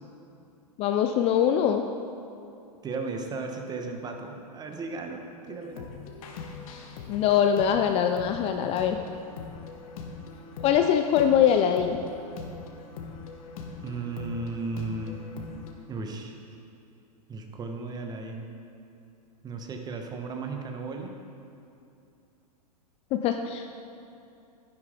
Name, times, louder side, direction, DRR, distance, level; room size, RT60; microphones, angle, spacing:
voice 1, 0.8-1.9 7.1-9.0 10.6-12.0 23.1-23.9, left 9 dB, 30° left, 6 dB, 0.4 m, -23 dB
voice 2, 2.8-5.9 13.8-15.2 15.9-16.4 17.3-18.5 19.4-21.1, right 3 dB, 20° right, 4 dB, 1.1 m, -35 dB
sound 1, 5.5-15.7, left 5 dB, 55° left, 1.4 m, -42 dB
11.0 x 11.0 x 3.8 m, 2.7 s
hypercardioid pair, 115°, 21 cm